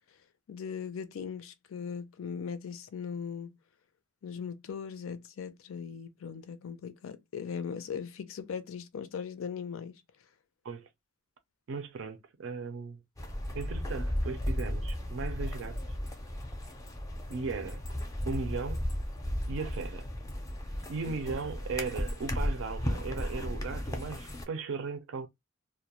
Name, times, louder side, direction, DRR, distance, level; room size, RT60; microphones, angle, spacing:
voice 1, 0.5-3.6 4.2-10.0 21.0-21.2, left 6 dB, 85° left, 0.4 m, -39 dB
voice 2, 11.7-13.0 13.5-15.8 17.3-17.8 18.3-18.9 19.5-20.1 20.9-25.3, right 4 dB, 70° right, 0.4 m, -37 dB
sound 1, 13.2-24.4, equal, 15° left, 0.4 m, -35 dB
2.2 x 2.1 x 2.8 m
head